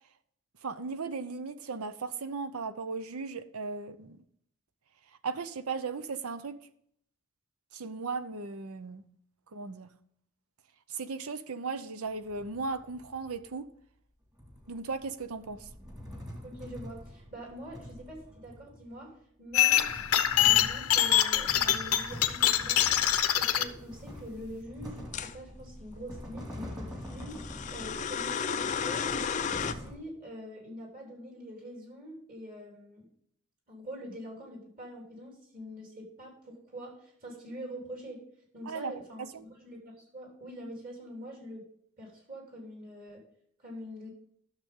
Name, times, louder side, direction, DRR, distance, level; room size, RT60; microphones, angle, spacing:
voice 1, 0.6-4.2 5.2-6.6 7.7-9.0 9.5-9.9 10.9-13.7 14.7-15.7 38.6-38.9 39.3-39.4, right 4 dB, 80° right, 0.7 m, -36 dB
sound 1, 12.1-13.4 14.4-19.0 19.5-29.9, equal, 20° right, 2.1 m, -45 dB
voice 2, 16.4-23.0 23.4-29.3 29.7-33.1 33.7-38.2 38.5-41.6 42.0-43.2 43.6-44.1, equal, 40° right, 3.4 m, -45 dB
sound 2, 19.5-23.6, left 11 dB, 85° left, 0.7 m, -25 dB
sound 3, 25.1-25.4 27.2-29.7, left 6 dB, 35° left, 0.4 m, -33 dB
12.0 x 6.7 x 3.7 m
head